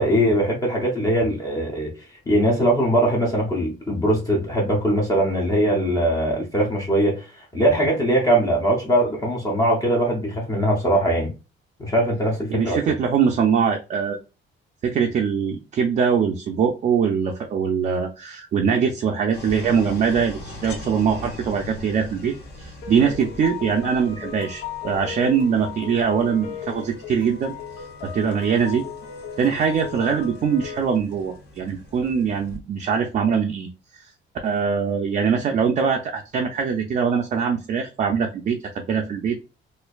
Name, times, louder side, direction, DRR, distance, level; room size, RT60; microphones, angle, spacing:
voice 1, 0.0-1.9 2.3-11.3 11.8-12.9, right 1 dB, 15° left, 0.6 m, -21 dB
voice 2, 12.5-14.2 14.8-27.5 28.1-28.8 29.4-33.7 34.4-39.4, right 6 dB, 35° right, 0.4 m, -22 dB
sound 1, 19.3-32.6, left 2 dB, 55° left, 1.1 m, -42 dB
sound 2, 22.8-30.9, left 7 dB, 80° left, 0.7 m, -36 dB
4.3 x 2.5 x 2.3 m
cardioid pair, 180°, 21 cm